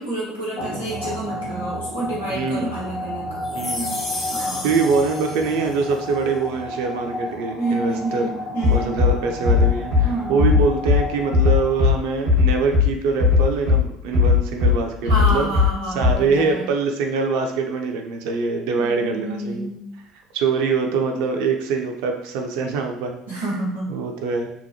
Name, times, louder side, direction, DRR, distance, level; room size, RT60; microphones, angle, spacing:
voice 1, 0.0-3.3 4.3-4.8 7.6-9.0 10.0-10.5 15.0-16.7 18.8-19.8 23.3-23.9, right 2 dB, 90° left, -10 dB, 1.0 m, -28 dB
sound 1, 0.6-11.9, left 1 dB, 55° left, 1.1 m, -32 dB
voice 2, 2.3-2.7 3.5-4.0 4.4-8.3 8.7-15.5 15.9-19.7 20.3-23.4 23.9-24.5, right 4 dB, 60° right, 4 dB, 0.4 m, -24 dB
sound 2, 3.4-6.0, left 2 dB, 35° left, 0.6 m, -32 dB
Bass drum, 8.6-9.1 9.4-10.0 10.4-11.0 11.3-11.9 12.2-12.9 13.2-13.8 14.1-14.7 15.1-15.7 16.0-16.1, left 4 dB, 85° right, 1.1 m, -16 dB
2.8 x 2.2 x 2.6 m, 0.78 s
figure-of-eight pair, 60°, 0 cm